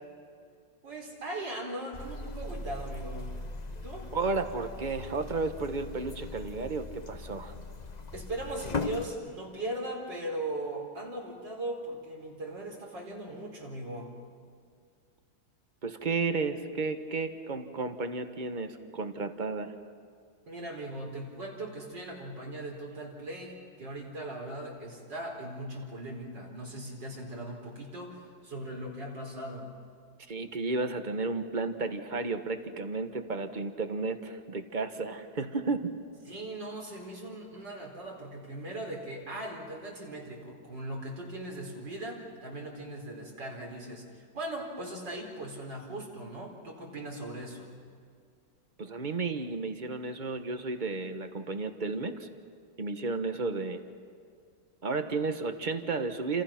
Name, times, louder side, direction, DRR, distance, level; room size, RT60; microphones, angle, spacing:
voice 1, 0.8-3.4 3.7-4.1 8.1-14.1 20.5-29.7 36.3-47.7, right 1 dB, 65° right, 0 dB, 5.1 m, -39 dB
sound 1, 1.9-9.1, left 3 dB, 30° left, 0.9 m, -39 dB
voice 2, 4.1-7.5 15.8-19.7 30.3-35.9 48.8-52.3 52.8-53.8 54.8-56.4, right 3 dB, 30° right, 8 dB, 1.2 m, -33 dB
29.5 x 27.5 x 6.0 m, 2.2 s
omnidirectional pair, 2.1 m